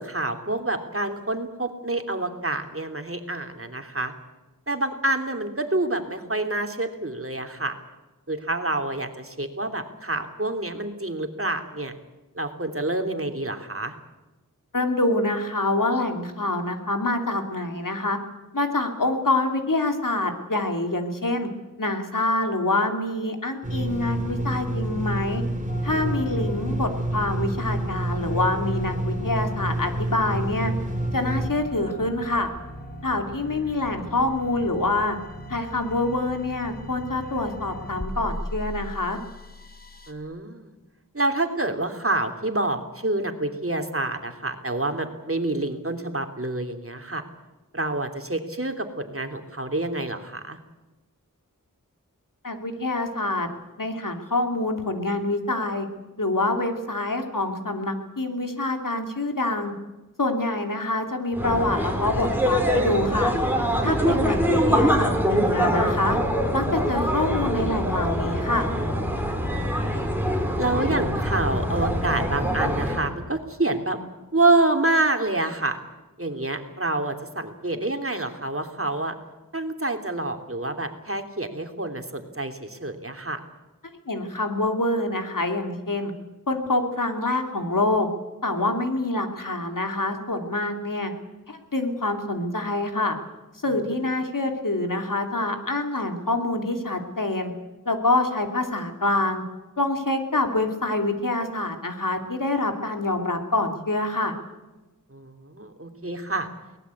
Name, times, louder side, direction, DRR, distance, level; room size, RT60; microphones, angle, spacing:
voice 1, 0.0-4.1 4.7-7.7 8.3-11.9 12.3-13.9 25.9-26.4 33.5-33.7 40.1-40.7 41.1-47.2 47.7-50.6 70.6-74.0 74.3-75.8 76.2-79.1 79.5-83.4 94.2-94.3 105.1-106.5, right 2 dB, 40° right, 5 dB, 3.0 m, -27 dB
voice 2, 14.7-18.2 18.5-21.5 21.8-25.4 25.8-30.7 31.1-32.5 33.0-35.2 35.5-39.2 52.4-53.5 53.8-55.9 56.2-59.7 60.2-63.3 63.8-66.2 66.5-68.7 84.1-86.1 86.5-88.1 88.4-91.1 91.5-93.2 93.6-97.5 97.8-99.4 99.8-104.3, left 2 dB, 75° left, 5 dB, 3.2 m, -26 dB
sound 1, 23.6-31.5, right 1 dB, 25° right, 3.3 m, -28 dB
sound 2, 25.7-40.1, left 1 dB, 30° left, 2.7 m, -39 dB
sound 3, 61.3-73.1, equal, 5° right, 5.1 m, -24 dB
23.5 x 19.0 x 8.6 m, 1.1 s
wide cardioid pair, 40°, 33 cm